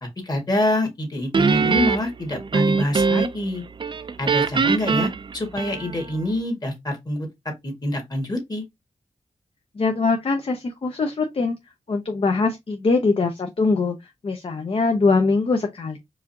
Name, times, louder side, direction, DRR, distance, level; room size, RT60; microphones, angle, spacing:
voice 1, 0.0-3.6 4.2-7.3 7.6-8.6, left 1 dB, 30° left, 1.5 m, -26 dB
Guitar, 1.3-3.5 3.8-6.1, right 5 dB, 40° right, 0.4 m, -22 dB
voice 2, 9.8-11.6 11.9-14.0 14.2-16.0, left 3 dB, 45° left, 0.6 m, -22 dB
4.8 x 2.5 x 2.6 m
wide cardioid pair, 105°, 13 cm